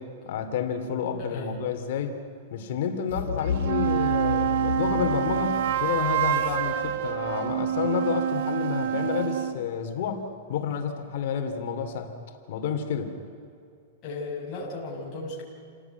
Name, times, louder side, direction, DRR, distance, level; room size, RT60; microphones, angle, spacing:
voice 1, 0.0-2.1 2.5-12.1 12.5-13.2, left 7 dB, 55° left, 5 dB, 2.7 m, -30 dB
sound 1, 3.1-8.0, left 8 dB, 80° left, 0.8 m, -33 dB
sound 2, 3.4-9.6, right 11 dB, 55° right, 1.4 m, -27 dB
voice 2, 14.0-15.4, left 3 dB, 25° left, -5 dB, 5.7 m, -35 dB
29.0 x 18.0 x 9.3 m, 2.5 s
supercardioid pair, 165°, 0 cm